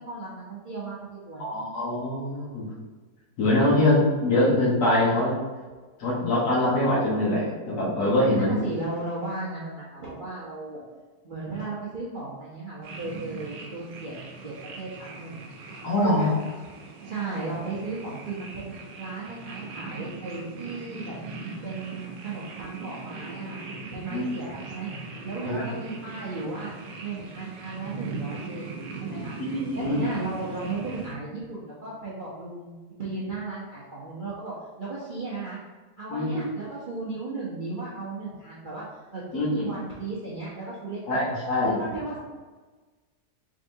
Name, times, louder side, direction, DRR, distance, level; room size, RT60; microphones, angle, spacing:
voice 1, 0.0-1.5 8.4-10.8 11.2-14.1 14.4-15.5 16.0-16.3 17.0-21.2 21.6-24.9 25.2-26.7 27.0-29.4 29.7-35.6 36.0-38.8 39.1-41.3 41.6-42.2, right 3 dB, 50° right, -8 dB, 0.6 m, -35 dB
voice 2, 1.4-2.7 3.4-5.3 6.0-8.5 15.8-16.3 24.1-24.3 25.4-25.6 29.4-30.0 36.1-36.4 39.3-39.7 41.1-41.8, left 1 dB, 75° left, -6 dB, 1.7 m, -23 dB
sound 1, 12.8-31.1, right 3 dB, 80° right, 1.2 m, -40 dB
3.8 x 3.6 x 2.6 m, 1.3 s
omnidirectional pair, 1.7 m